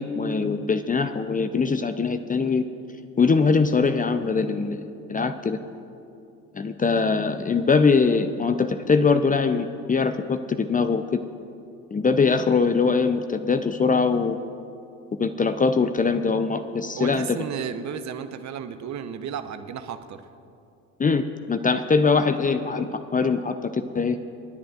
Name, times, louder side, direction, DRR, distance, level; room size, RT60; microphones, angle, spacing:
voice 1, 0.0-2.6 3.2-5.6 6.5-11.2 11.9-14.4 15.2-17.4 21.0-24.2, left 4 dB, 20° left, 9 dB, 0.6 m, -22 dB
voice 2, 16.9-20.2, right 8 dB, 45° right, 9 dB, 0.9 m, -33 dB
29.5 x 10.5 x 2.5 m, 2.6 s
hypercardioid pair, 60°, 40 cm